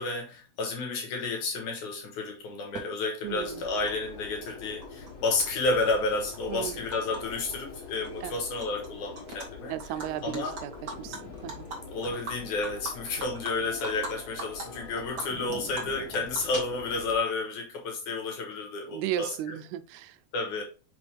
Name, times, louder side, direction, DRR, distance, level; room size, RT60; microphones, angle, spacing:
voice 1, 0.0-9.7 10.2-10.5 11.9-19.5 20.3-20.6, left 3 dB, 60° left, 2.4 m, -31 dB
Animal, 2.7-2.8 3.9-4.0 4.2-5.1 5.4-7.2 7.5-7.7 8.0-8.9 9.1-9.5 9.8-14.1 14.4-14.6 15.0-17.1, right 2 dB, 55° right, 1.2 m, -40 dB
sound 1, 3.2-17.2, left 4 dB, 45° left, 2.0 m, -44 dB
voice 2, 3.2-3.7 6.5-6.9 8.2-8.4 9.7-11.7 18.8-20.2, right 12 dB, 85° right, 2.5 m, -35 dB
6.0 x 5.2 x 3.4 m
omnidirectional pair, 4.4 m